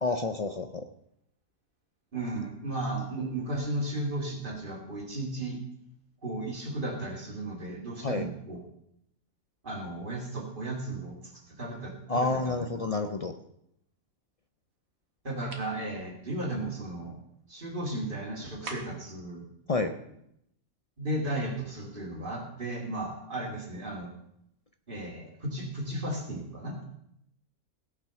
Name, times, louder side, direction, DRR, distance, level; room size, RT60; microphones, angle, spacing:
voice 1, 0.0-0.8 8.0-8.3 12.1-13.3 19.7-19.9, left 3 dB, 65° left, 7 dB, 0.3 m, -29 dB
voice 2, 2.1-5.6 6.2-8.6 9.6-11.2 11.5-12.6 15.2-17.2 17.5-19.4 21.0-24.1 24.9-26.8, right 1 dB, 35° right, 0 dB, 2.5 m, -35 dB
sound 1, 15.5-15.8 18.6-19.1, right 3 dB, 80° right, 1.8 m, -41 dB
16.5 x 6.0 x 5.8 m, 0.76 s
omnidirectional pair, 1.5 m